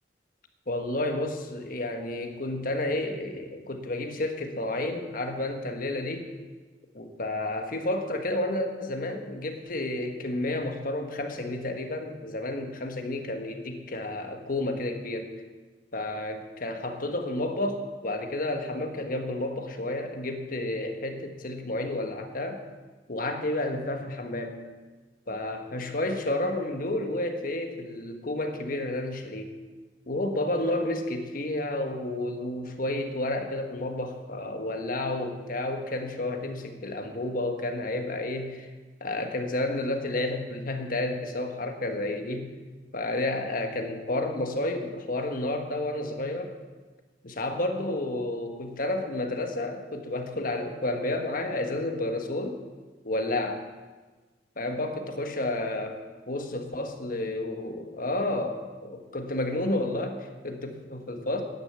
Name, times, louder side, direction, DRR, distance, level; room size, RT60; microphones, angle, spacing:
voice 1, 0.7-6.3 6.9-15.3 15.9-22.6 23.1-24.6 25.3-29.5 30.1-38.7 39.0-42.5 42.9-46.5 47.2-52.6 53.0-53.7 54.6-56.0 56.3-61.4, left 1 dB, 50° left, 5 dB, 1.4 m, -31 dB
10.5 x 10.0 x 8.0 m, 1.3 s
head